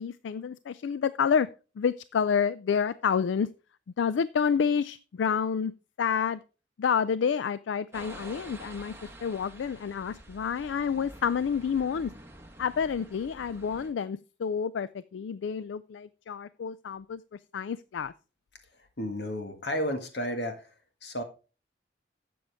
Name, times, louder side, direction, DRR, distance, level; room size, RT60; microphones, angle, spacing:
voice 1, 0.0-1.5 1.8-3.5 4.0-5.7 6.0-6.4 6.8-8.9 9.2-12.1 12.6-18.1, left 6 dB, 85° left, 16 dB, 0.4 m, -29 dB
sound 1, 7.9-13.9, right 1 dB, 15° right, 1.3 m, -48 dB
voice 2, 19.0-20.7 21.0-21.2, equal, 70° left, 6 dB, 1.8 m, -32 dB
12.5 x 7.7 x 3.5 m, 0.35 s
head